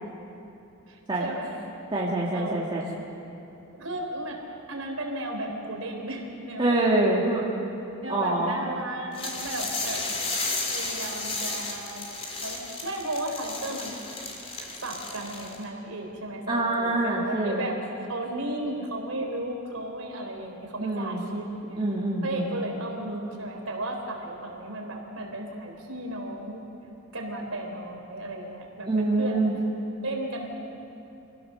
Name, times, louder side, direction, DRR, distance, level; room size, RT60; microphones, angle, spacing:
voice 1, 0.9-1.6 2.3-2.8 3.7-4.4 4.7-6.8 8.0-10.0 10.7-12.0 12.4-14.0 14.5-21.8 22.2-26.6 27.1-29.5 30.0-30.5, right 1 dB, 85° right, 1 dB, 3.7 m, -34 dB
voice 2, 1.9-2.9 6.6-7.5 8.1-8.6 16.5-17.6 20.8-21.2 21.8-22.4 28.8-29.5, right 2 dB, 25° right, -5 dB, 2.0 m, -25 dB
sound 1, 9.1-15.6, left 3 dB, 30° left, 2.5 m, -33 dB
25.5 x 16.5 x 6.7 m, 2.9 s
head